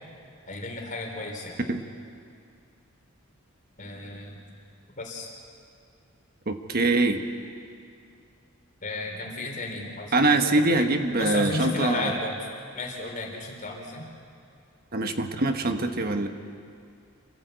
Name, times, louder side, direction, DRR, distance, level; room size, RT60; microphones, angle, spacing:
voice 1, 0.5-1.6 3.8-4.4 5.0-5.3 8.8-10.9 11.2-12.5 12.7-14.1, left 2 dB, 40° left, 1 dB, 3.8 m, -33 dB
voice 2, 6.5-7.2 10.1-12.1 14.9-16.3, right 2 dB, 45° right, 6 dB, 1.3 m, -23 dB
27.0 x 14.5 x 8.2 m, 2.4 s
head